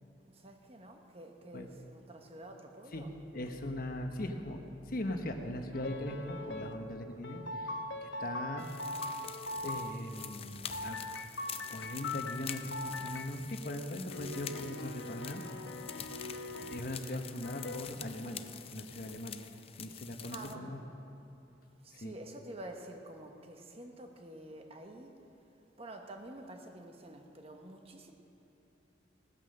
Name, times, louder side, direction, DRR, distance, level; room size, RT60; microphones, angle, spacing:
voice 1, 0.2-3.1 20.3-20.8 21.8-25.1 25.8-28.1, right 1 dB, 35° right, 4 dB, 1.1 m, -48 dB
voice 2, 3.3-8.7 9.1-11.0 11.7-15.4 16.7-18.4 18.7-19.4 19.8-20.8 21.9-22.1, left 1 dB, 50° left, 5 dB, 1.1 m, -40 dB
sound 1, 5.7-6.7 7.2-9.9 10.7-13.4 14.1-16.8 17.4-17.8, left 2 dB, 85° left, 1.0 m, -41 dB
sound 2, 8.6-20.6, left 8 dB, 30° left, 0.5 m, -47 dB
17.0 x 9.3 x 6.6 m, 2.8 s
head